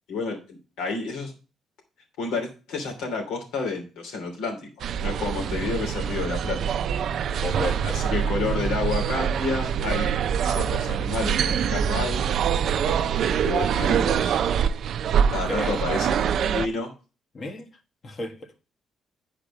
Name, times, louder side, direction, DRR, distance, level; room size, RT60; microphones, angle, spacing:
voice 1, 0.1-1.3 2.2-4.6 5.0-6.7 7.8-10.1 10.4-12.2 12.8-14.4 15.3-16.9, left 4 dB, 85° left, 3.0 m, -30 dB
sound 1, 4.8-16.7, right 8 dB, 65° right, 0.5 m, -25 dB
voice 2, 7.4-8.0 15.3-15.9 17.3-17.7 18.0-18.5, left 1 dB, 45° left, 1.5 m, -33 dB
9.4 x 4.9 x 4.9 m
cardioid pair, 90°, 0 cm